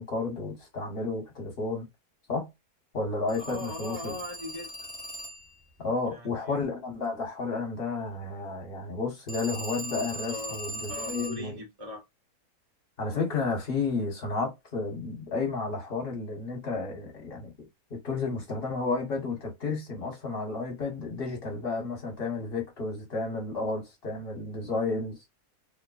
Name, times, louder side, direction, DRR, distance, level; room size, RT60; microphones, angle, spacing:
voice 1, 0.0-1.9 2.3-2.5 2.9-4.1 5.8-11.6 13.0-17.5 17.9-25.2, left 3 dB, 40° left, 1.2 m, -32 dB
Telephone, 3.3-5.6 9.3-11.5, right 1 dB, 10° left, 0.4 m, -39 dB
voice 2, 3.4-4.9 6.0-6.6 10.3-10.6 10.9-12.0, left 2 dB, 65° right, 0.3 m, -39 dB
2.9 x 2.1 x 2.3 m
omnidirectional pair, 1.6 m